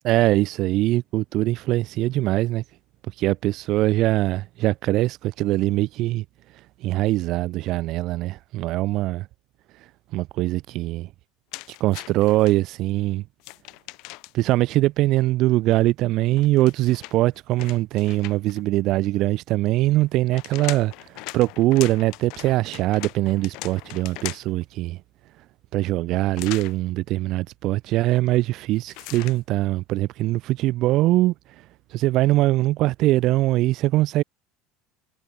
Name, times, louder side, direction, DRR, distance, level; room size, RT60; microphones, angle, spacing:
voice 1, 0.0-2.6 3.2-6.2 6.8-9.2 10.1-11.1 11.7-13.2 14.3-20.9 21.3-25.0 25.7-31.3 31.9-34.2, right 17 dB, 55° right, 0.5 m, -22 dB
sound 1, 11.5-12.5 13.4-14.5 16.3-18.6 20.0-24.6 26.3-26.8 28.9-29.4, left 25 dB, 65° left, 4.1 m, -39 dB
supercardioid pair, 120°, 0 cm